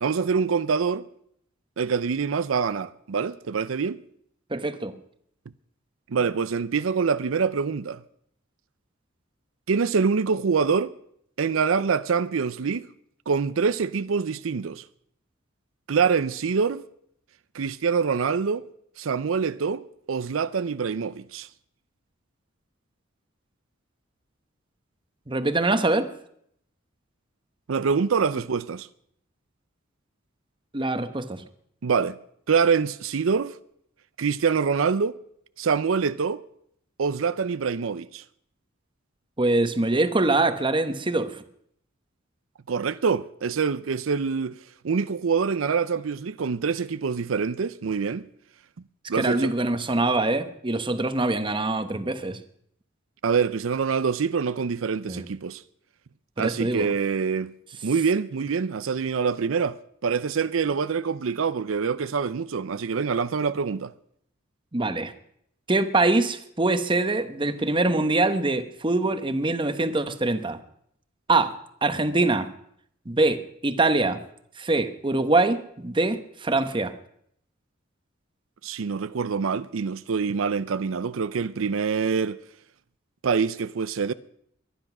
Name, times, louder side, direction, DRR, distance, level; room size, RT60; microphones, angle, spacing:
voice 1, 0.0-1.0 1.8-4.0 6.1-8.0 9.7-10.9 11.4-12.9 13.3-14.8 15.9-16.8 17.5-18.6 19.0-21.5 27.7-28.9 31.8-32.2 32.5-33.5 34.2-35.2 35.6-36.4 37.0-38.2 42.7-44.5 44.8-48.3 49.1-49.5 53.2-55.6 56.4-57.5 57.8-59.8 60.0-63.9 78.6-82.4 83.2-84.1, right 5 dB, 85° right, 0.5 m, -25 dB
voice 2, 4.5-4.9 25.3-26.1 30.7-31.4 39.4-41.4 49.1-52.4 55.1-55.2 56.4-56.9 64.7-65.1 65.7-70.6 71.3-71.5 71.8-72.5 73.1-74.2 74.6-76.9, right 2 dB, 25° right, 1.0 m, -24 dB
23.0 x 10.5 x 6.0 m
head